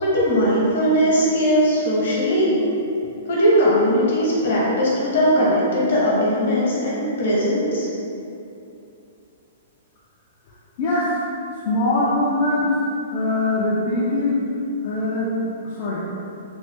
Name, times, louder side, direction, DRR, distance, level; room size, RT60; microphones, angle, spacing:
voice 1, 0.0-2.5 3.3-7.9, equal, 65° left, -6 dB, 1.0 m, -19 dB
voice 2, 10.8-11.1 11.7-12.8 13.1-14.4 14.8-15.3 15.6-16.0, left 2 dB, 40° left, -8 dB, 0.4 m, -22 dB
3.1 x 2.0 x 2.9 m, 2.7 s
hypercardioid pair, 165°, 0 cm